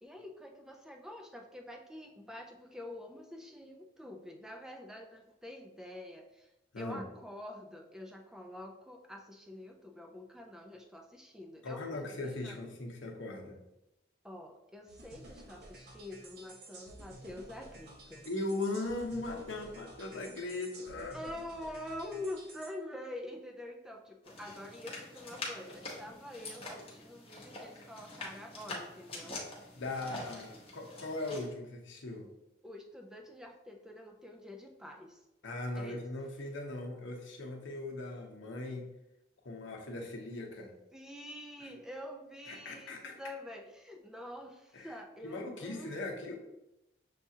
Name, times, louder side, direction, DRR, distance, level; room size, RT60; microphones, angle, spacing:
voice 1, 0.0-12.6 14.2-18.3 21.1-29.7 30.1-30.5 32.6-35.2 35.7-36.0 40.9-46.1, left 1 dB, 5° right, 2 dB, 0.4 m, -46 dB
voice 2, 11.6-13.6 18.2-21.2 29.8-32.3 35.4-38.9 39.4-40.8 42.5-43.2 44.7-44.9 45.2-46.4, left 2 dB, 90° left, 1 dB, 0.8 m, -39 dB
sound 1, 14.9-22.7, right 1 dB, 55° right, 0.7 m, -52 dB
sound 2, 24.2-31.5, left 2 dB, 30° left, 0.9 m, -45 dB
6.7 x 2.4 x 2.7 m, 0.91 s
head